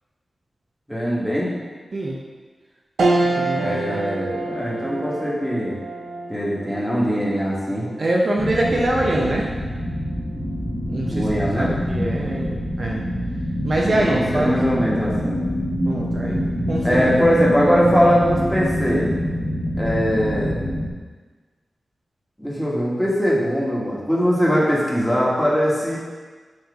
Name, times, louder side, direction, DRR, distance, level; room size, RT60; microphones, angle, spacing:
voice 1, 0.9-1.5 3.5-5.8 6.3-7.9 11.1-11.7 13.9-15.4 16.8-19.1 19.8-20.5 22.4-26.0, equal, ahead, -6 dB, 1.4 m, -21 dB
sound 1, 3.0-12.6 13.1-13.2 14.5-14.9, right 2 dB, 90° right, 0.6 m, -29 dB
voice 2, 3.2-4.0 8.0-9.5 10.9-11.3 11.6-13.0 13.6-14.6 15.9-16.4 16.7-17.1, right 1 dB, 50° right, -2 dB, 0.6 m, -24 dB
sound 2, 8.4-20.9, equal, 25° left, 1.1 m, -25 dB
6.9 x 3.1 x 4.6 m, 1.4 s
wide cardioid pair, 115°, 0 cm